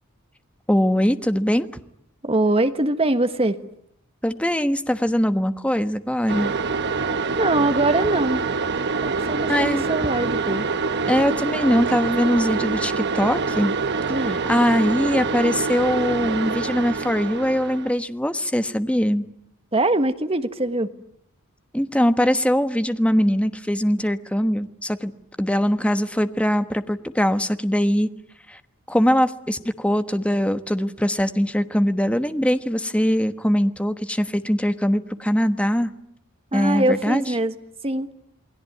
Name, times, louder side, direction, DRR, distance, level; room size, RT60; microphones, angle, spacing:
voice 1, 0.7-1.7 4.2-6.5 9.5-9.8 11.1-13.7 14.3-19.2 21.7-25.1 25.4-28.1 28.5-28.6 28.9-35.9 36.5-37.2, equal, 5° left, 9 dB, 1.2 m, -21 dB
voice 2, 2.2-3.6 7.4-8.4 9.0-10.7 14.1-14.4 19.7-20.9 36.5-37.5 37.8-38.1, right 2 dB, 25° right, 9 dB, 1.5 m, -22 dB
sound 1, 6.3-17.9, right 4 dB, 50° right, 1.2 m, -25 dB
28.5 x 21.0 x 9.4 m, 0.75 s
head